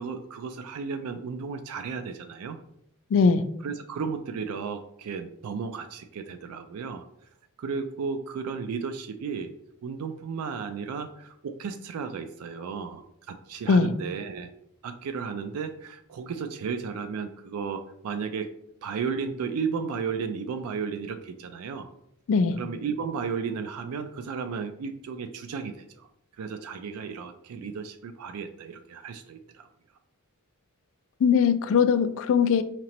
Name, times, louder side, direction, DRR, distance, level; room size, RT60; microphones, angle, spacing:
voice 1, 0.0-2.6 3.6-7.1 7.6-9.5 9.8-14.5 14.8-18.5 18.8-21.9 22.6-26.1 26.4-29.7, right 5 dB, 80° right, 8 dB, 0.3 m, -34 dB
voice 2, 3.1-3.5 13.7-13.9 22.3-22.6 31.2-32.6, left 6 dB, 65° left, 11 dB, 0.3 m, -20 dB
5.0 x 2.9 x 2.9 m, 0.75 s
head